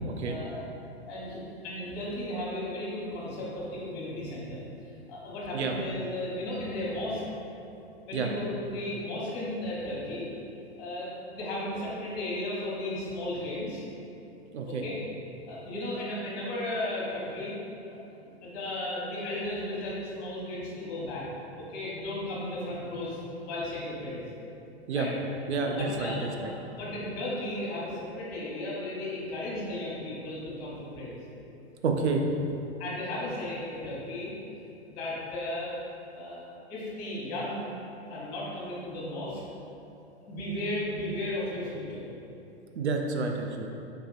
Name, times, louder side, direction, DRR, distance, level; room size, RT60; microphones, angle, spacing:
voice 1, 0.2-0.7 1.1-4.6 5.1-7.2 8.0-10.3 10.8-13.8 14.6-15.0 15.4-17.5 17.9-18.0 18.2-21.3 21.5-24.2 24.9-25.1 25.6-31.2 32.8-34.3 34.9-35.8 36.1-36.4 36.7-37.7 38.1-39.4 40.3-42.1, left 1 dB, 40° left, -5 dB, 1.0 m, -35 dB
voice 2, 14.5-14.9 24.9-25.1 25.5-26.5 31.8-32.2 42.7-43.7, right 4 dB, 80° right, 2 dB, 0.5 m, -29 dB
3.4 x 3.3 x 2.4 m, 2.7 s
hypercardioid pair, 105°, 33 cm